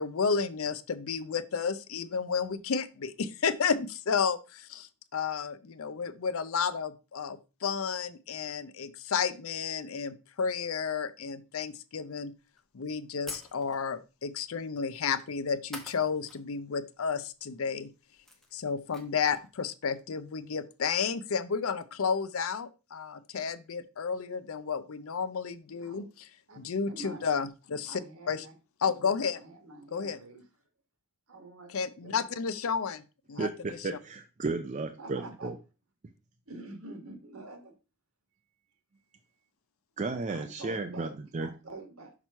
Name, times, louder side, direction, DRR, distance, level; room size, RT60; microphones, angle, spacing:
voice 1, 0.0-12.3 12.7-17.9 18.5-26.3 26.6-28.0 28.3-28.4 28.8-29.4 29.9-30.2 31.7-33.0 33.3-34.0, left 6 dB, 65° left, 14 dB, 0.5 m, -32 dB
sound 1, 12.6-12.7 13.3-13.9 15.1-15.3 15.7-16.4 16.7-16.8 17.8-17.9 18.1-19.5, left 2 dB, ahead, 0.8 m, -45 dB
voice 2, 26.9-27.2 27.8-28.5 29.3-30.4 31.3-32.2 33.3-33.5 35.0-35.5 36.5-37.7 40.3-42.1, right 2 dB, 70° right, 5 dB, 1.6 m, -46 dB
voice 3, 33.4-35.5 40.0-41.5, right 3 dB, 30° right, 7 dB, 0.4 m, -34 dB
5.9 x 3.0 x 5.5 m, 0.31 s
head